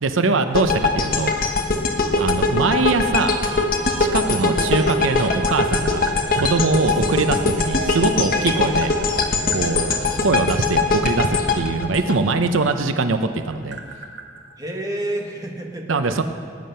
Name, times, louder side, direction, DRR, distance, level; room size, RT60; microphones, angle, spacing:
voice 1, 0.0-1.6 2.2-3.4 4.0-8.9 9.5-13.8 15.9-16.2, right 3 dB, 90° right, 8 dB, 0.7 m, -22 dB
sound 1, 0.5-12.7, left 3 dB, 45° left, 1.2 m, -21 dB
sound 2, 3.1-10.5, right 4 dB, 40° right, 0.6 m, -34 dB
Tap, 5.0-6.5 7.9-10.0 10.8-12.9 13.2-15.2, right 3 dB, 65° right, 1.6 m, -40 dB
voice 2, 14.6-16.2, right 1 dB, 20° right, 0 dB, 1.5 m, -29 dB
19.0 x 9.5 x 5.7 m, 2.2 s
head